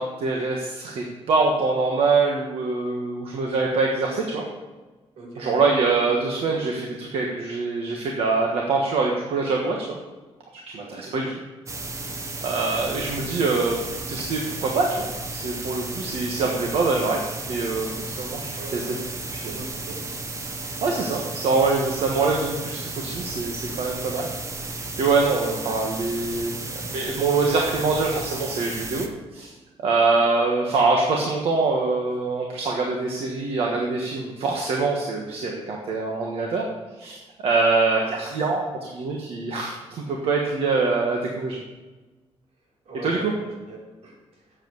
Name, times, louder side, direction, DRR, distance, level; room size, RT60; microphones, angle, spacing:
voice 1, 0.0-4.4 5.4-10.0 10.7-11.3 12.4-13.8 14.1-15.1 15.3-17.2 17.5-18.9 19.3-19.6 20.8-24.3 25.0-26.6 26.9-29.1 29.3-29.5 29.8-36.7 37.0-41.6 43.0-43.3, right 3 dB, 65° right, 0 dB, 1.5 m, -24 dB
voice 2, 5.2-5.5 10.8-11.3 18.5-19.0 19.4-20.0 25.6-25.8 30.1-30.5 42.9-44.2, right 2 dB, 85° right, -3 dB, 4.1 m, -40 dB
sound 1, 11.7-29.1, right 3 dB, 30° right, 1.0 m, -33 dB
8.2 x 7.6 x 7.9 m, 1.2 s
wide cardioid pair, 165°, 10 cm